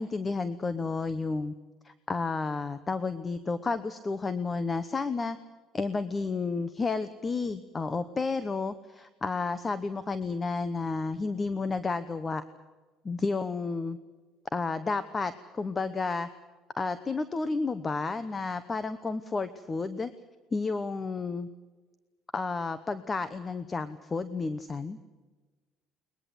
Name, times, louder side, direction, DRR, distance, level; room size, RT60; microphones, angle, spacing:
voice 1, 0.0-1.5 1.8-5.4 5.7-12.4 13.0-14.0 14.5-16.3 16.8-20.1 20.5-21.5 22.3-25.0, left 4 dB, 20° left, 13 dB, 1.0 m, -31 dB
22.0 x 21.0 x 7.9 m, 1.3 s
cardioid pair, 125°, 0 cm